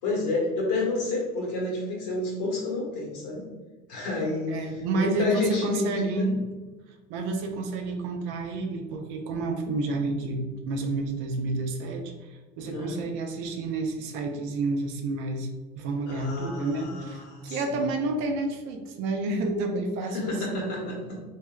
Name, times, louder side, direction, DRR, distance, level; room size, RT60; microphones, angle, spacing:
voice 1, 0.0-3.5 3.9-6.3 12.7-13.0 16.0-17.8 20.1-21.2, left 2 dB, 85° left, -3 dB, 1.2 m, -30 dB
voice 2, 4.5-6.4 7.1-15.5 15.8-20.6, right 2 dB, 70° right, 4 dB, 0.6 m, -30 dB
3.2 x 2.6 x 2.3 m, 1.3 s
supercardioid pair, 90°, 21 cm